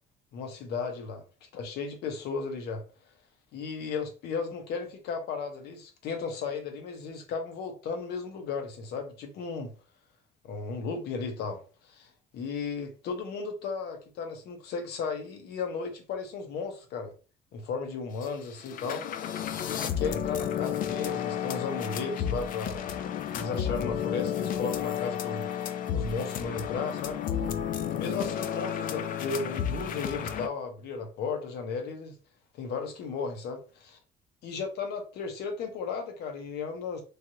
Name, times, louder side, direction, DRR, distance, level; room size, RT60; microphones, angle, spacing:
voice 1, 0.3-1.2 1.5-2.8 3.5-9.7 10.4-17.1 17.5-19.0 19.7-23.0 23.3-27.2 27.9-32.2 32.6-34.0 34.4-37.0, left 5 dB, 75° left, 0.9 m, -35 dB
sound 1, 18.2-18.3 18.6-30.5, left 9 dB, 55° left, 0.4 m, -32 dB
3.2 x 2.4 x 2.7 m
cardioid pair, 110°, 17 cm